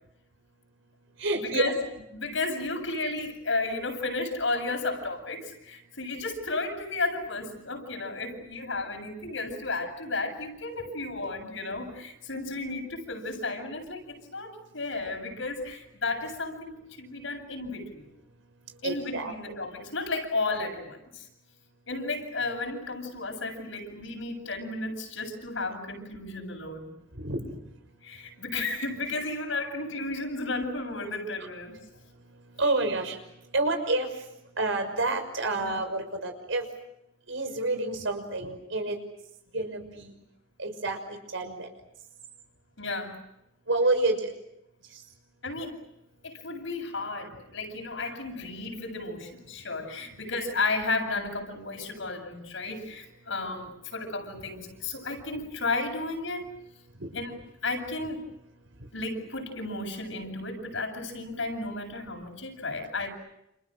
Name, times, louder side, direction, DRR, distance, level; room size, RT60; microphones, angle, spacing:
voice 1, 1.2-1.7 18.8-19.6 27.1-27.4 32.2-34.2 34.6-36.7 37.3-39.0 39.5-40.1 40.6-41.0 41.3-41.7 43.7-44.3 44.9-45.0 55.4-55.5 57.0-57.2, right 2 dB, 75° right, 6 dB, 6.2 m, -29 dB
voice 2, 2.1-18.1 18.8-21.3 21.9-26.9 28.0-31.7 35.5-35.8 42.8-43.2 45.4-45.8 46.2-56.5 57.1-57.3 57.6-58.2 58.9-63.1, left 3 dB, 75° left, 3 dB, 7.8 m, -33 dB
29.5 x 29.5 x 6.5 m, 0.81 s
head